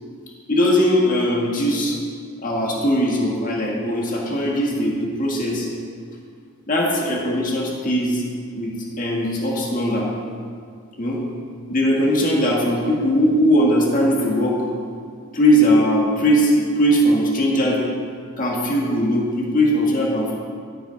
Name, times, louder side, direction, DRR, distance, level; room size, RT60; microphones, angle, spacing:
voice 1, 0.5-2.0 2.4-5.7 6.7-8.2 8.5-10.1 11.0-11.2 11.7-14.6 15.3-17.8 18.4-20.3, equal, 40° left, -3 dB, 1.7 m, -19 dB
12.5 x 5.7 x 5.0 m, 2.1 s
head